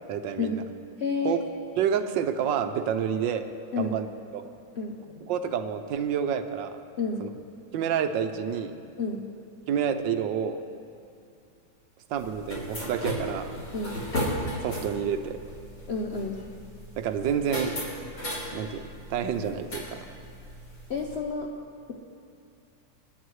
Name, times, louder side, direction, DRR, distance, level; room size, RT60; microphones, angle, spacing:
voice 1, 0.1-0.6 1.2-1.4 1.8-3.5 3.8-4.1 4.3-4.5 5.3-6.8 7.2-7.3 7.7-8.8 9.7-10.6 12.1-13.5 14.6-15.4 17.0-17.7 18.5-18.8 19.1-20.0, right 8 dB, 70° right, 8 dB, 1.3 m, -28 dB
voice 2, 1.0-1.4 3.7-4.0 4.8-5.3 7.0-7.2 9.0-9.3 13.7-14.0 15.9-16.4 20.9-21.5, left 4 dB, 85° left, 1 dB, 0.5 m, -30 dB
sound 1, 12.1-21.2, equal, 60° left, 4.0 m, -36 dB
27.0 x 9.4 x 3.2 m, 2.5 s
omnidirectional pair, 2.2 m